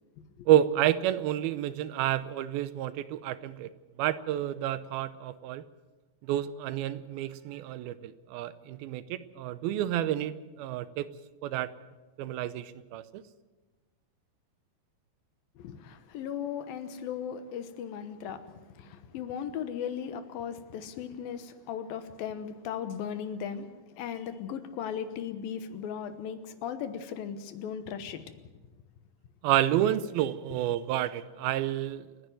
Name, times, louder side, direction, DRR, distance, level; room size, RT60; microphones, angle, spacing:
voice 1, 0.5-3.7 4.0-5.6 6.2-11.1 11.4-11.7 12.2-13.2 29.4-32.1, right 12 dB, 85° right, 15 dB, 2.6 m, -29 dB
voice 2, 15.6-28.2, left 8 dB, 75° left, 10 dB, 2.9 m, -37 dB
28.5 x 10.5 x 9.1 m, 1.2 s
omnidirectional pair, 4.2 m